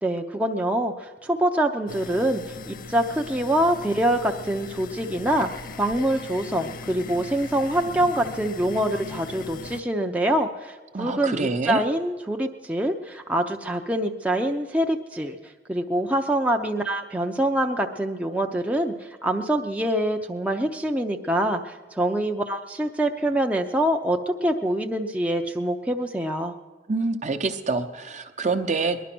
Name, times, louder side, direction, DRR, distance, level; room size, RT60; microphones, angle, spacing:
voice 1, 0.0-5.5 5.8-15.4 15.7-26.5, right 1 dB, 10° right, 2 dB, 0.6 m, -25 dB
sound 1, 1.9-9.8, left 4 dB, 50° left, 0.5 m, -39 dB
voice 2, 10.9-11.9 26.9-29.0, right 3 dB, 45° right, 7 dB, 0.8 m, -26 dB
20.0 x 11.0 x 6.0 m, 1.3 s
head